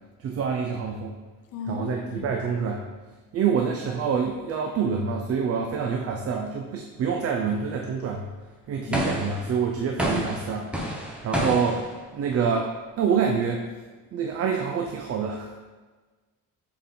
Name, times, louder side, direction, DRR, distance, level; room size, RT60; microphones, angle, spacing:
voice 1, 0.2-1.2 1.7-2.8 3.3-8.3 8.7-10.8 11.2-12.7 13.0-13.6 14.1-15.5, right 6 dB, 45° right, 2 dB, 0.5 m, -26 dB
voice 2, 1.5-2.3 8.9-9.1, left 4 dB, 90° left, 5 dB, 0.7 m, -35 dB
sound 1, 8.9-9.5 10.0-11.9, equal, 5° right, 0.6 m, -28 dB
6.7 x 3.8 x 3.6 m, 1.3 s
cardioid pair, 175°, 33 cm